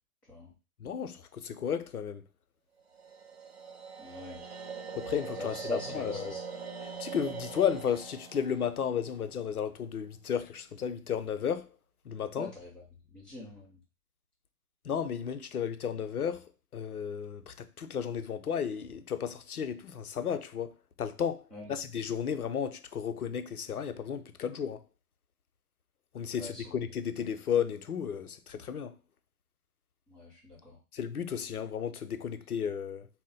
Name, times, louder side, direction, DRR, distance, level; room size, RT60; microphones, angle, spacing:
voice 1, 0.8-2.2 5.0-6.4 6.8-11.7 12.0-12.5 14.8-24.8 26.1-29.0 30.9-33.1, left 8 dB, 70° left, 0.6 m, -33 dB
sound 1, 2.9-10.0, right 5 dB, 45° right, 0.4 m, -43 dB
voice 2, 4.0-4.4 5.4-6.4 12.4-12.7 13.1-13.8 21.5-21.7 26.4-26.8 30.1-30.8, left 1 dB, 5° left, 0.6 m, -42 dB
4.0 x 2.1 x 3.8 m
figure-of-eight pair, 130°, 46 cm